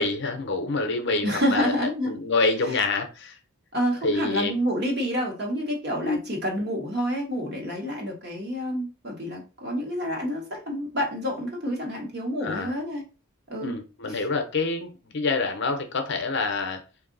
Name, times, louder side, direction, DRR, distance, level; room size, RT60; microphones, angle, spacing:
voice 1, 0.0-1.7 2.0-3.4 4.0-4.5 6.0-6.2 12.4-12.7 13.6-16.8, left 3 dB, 50° left, 0.7 m, -26 dB
voice 2, 1.2-2.1 3.7-13.0 13.5-13.8 14.1-14.2, equal, 45° right, 1.2 m, -28 dB
3.6 x 2.6 x 3.8 m
head